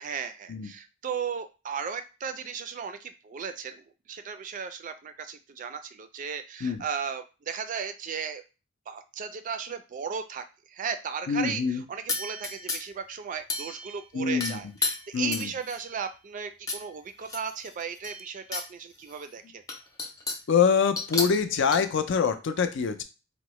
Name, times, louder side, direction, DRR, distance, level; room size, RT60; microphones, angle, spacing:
voice 1, 0.0-8.4 8.9-19.6, right 6 dB, 40° right, 8 dB, 0.3 m, -36 dB
voice 2, 11.3-11.8 14.1-14.6 15.1-15.5 20.5-23.0, left 6 dB, 65° left, 9 dB, 0.4 m, -25 dB
sound 1, 12.1-13.0 13.5-14.0 14.4-15.9 16.7-16.8 17.2-18.7 19.1-19.2 19.7-20.5 21.0-21.8, left 3 dB, 20° left, 0.5 m, -33 dB
3.6 x 2.0 x 3.0 m, 0.31 s
head